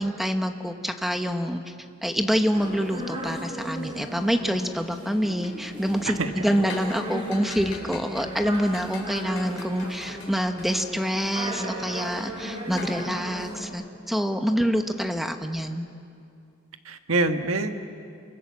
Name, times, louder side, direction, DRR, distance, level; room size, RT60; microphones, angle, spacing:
voice 1, 0.0-1.7 2.0-15.9, equal, ahead, 6 dB, 1.1 m, -26 dB
sound 1, 2.5-13.6, equal, 25° right, 4.3 m, -36 dB
sound 2, 5.0-13.0, left 3 dB, 75° left, 4.0 m, -44 dB
voice 2, 16.8-17.7, right 2 dB, 80° right, 7 dB, 1.6 m, -26 dB
29.0 x 25.0 x 7.3 m, 2.4 s
head